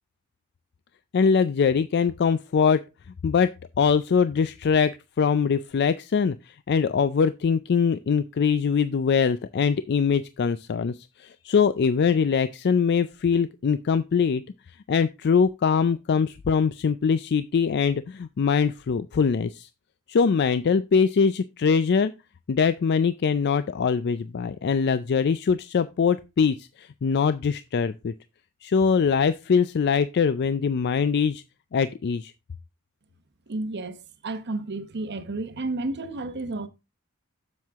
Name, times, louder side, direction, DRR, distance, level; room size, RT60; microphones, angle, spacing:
voice 1, 1.1-2.8 3.2-3.5 3.8-10.9 11.2-14.4 14.9-19.7 20.1-22.1 22.5-28.1 28.6-31.4 31.7-32.3, left 6 dB, 50° left, 0.4 m, -22 dB
voice 2, 33.5-36.7, right 2 dB, 50° right, 0.9 m, -32 dB
7.6 x 7.4 x 3.5 m
head